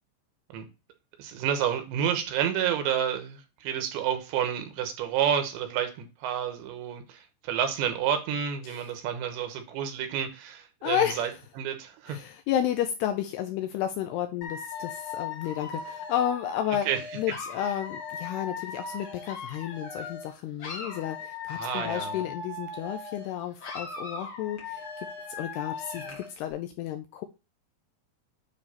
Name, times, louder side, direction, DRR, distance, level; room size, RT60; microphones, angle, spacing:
voice 1, 1.2-11.3 11.6-12.2 16.9-17.0 21.5-22.2 26.0-26.1, right 9 dB, 80° right, 3.2 m, -30 dB
voice 2, 10.8-11.3 12.1-16.9 17.2-27.3, left 11 dB, 80° left, 2.4 m, -32 dB
Dog / Alarm, 14.4-20.3 20.6-23.3 23.6-26.3, left 4 dB, 45° left, 2.1 m, -38 dB
9.5 x 3.3 x 4.2 m
omnidirectional pair, 5.2 m